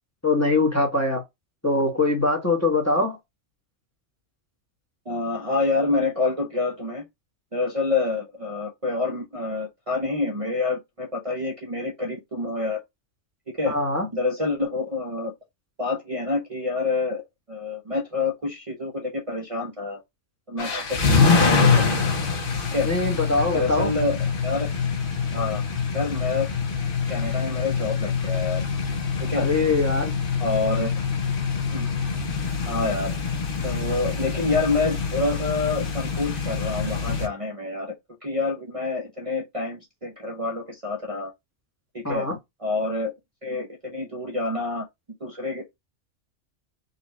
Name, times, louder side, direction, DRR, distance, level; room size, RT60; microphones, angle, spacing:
voice 1, 0.2-1.2 1.6-3.2 13.7-14.1 22.8-23.9 29.3-30.1 42.0-42.4, left 2 dB, 15° left, 1.0 m, -22 dB
voice 2, 5.1-7.1 7.5-12.8 13.5-13.7 14.1-15.3 15.8-17.2 17.5-20.0 20.5-22.0 22.7-22.9 23.5-24.7 25.3-25.6 25.9-26.5 27.1-28.6 29.2-29.5 30.4-31.0 31.7-31.9 32.7-33.2 33.6-37.9 38.2-41.3 41.9-42.3 42.6-43.1 43.4-44.9 45.2-45.8, left 3 dB, 35° right, 0.8 m, -27 dB
sound 1, 20.6-37.3, left 5 dB, 50° left, 1.1 m, -25 dB
4.1 x 2.4 x 4.1 m
omnidirectional pair, 1.2 m